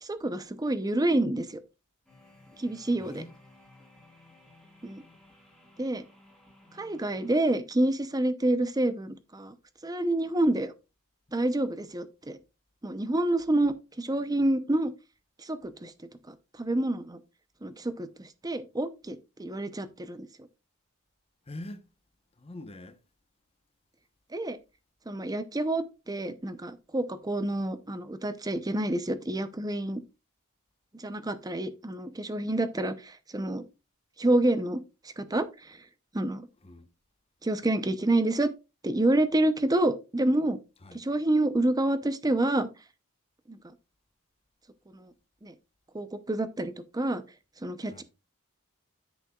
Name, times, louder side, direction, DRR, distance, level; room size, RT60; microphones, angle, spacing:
voice 1, 0.0-1.6 2.6-3.2 4.8-5.0 5.8-6.0 6.8-9.5 9.8-10.7 11.3-12.4 12.8-14.9 15.4-15.9 16.3-17.2 17.6-20.3 24.3-24.6 25.1-30.0 30.9-33.6 34.2-34.8 35.2-35.8 36.1-36.4 37.4-38.5 38.8-40.6 40.9-42.7 43.5-43.6 44.9-45.1 45.4-45.5 45.9-47.2 47.6-48.0, right 1 dB, 15° right, 0.7 m, -28 dB
sound 1, 2.0-7.4, left 2 dB, 5° left, 4.4 m, -57 dB
voice 2, 3.0-3.3 21.5-21.8 22.4-23.0 36.6-36.9 40.8-41.0 47.9-48.0, left 1 dB, 25° left, 1.0 m, -43 dB
10.0 x 8.4 x 2.4 m
head